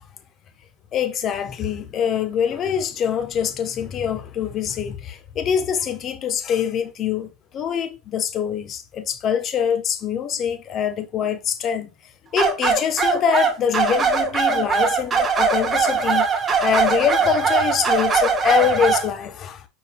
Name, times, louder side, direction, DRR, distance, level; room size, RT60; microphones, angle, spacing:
voice 1, 0.9-11.9 12.3-19.6, left 8 dB, 40° left, 0.8 m, -24 dB
sound 1, 12.4-19.1, right 5 dB, 25° right, 1.1 m, -20 dB
5.3 x 4.4 x 2.2 m
hypercardioid pair, 100°, 0 cm